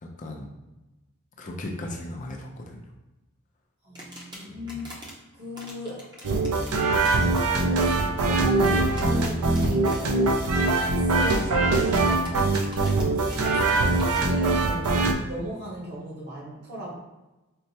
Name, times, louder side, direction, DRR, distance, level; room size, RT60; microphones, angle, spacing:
voice 1, 0.0-0.5 1.4-2.9 4.5-4.9, left 1 dB, 35° left, 2 dB, 0.4 m, -37 dB
voice 2, 3.8-5.0 5.3-6.1 7.6-10.3 10.8-17.0, equal, 50° right, -5 dB, 0.9 m, -38 dB
sound 1, 3.9-5.1 5.5-10.0 10.2-10.5 11.9-14.2, equal, 20° right, 0.6 m, -43 dB
sound 2, 6.2-15.1, right 2 dB, 85° right, 0.4 m, -23 dB
4.4 x 2.0 x 2.7 m, 1.0 s
head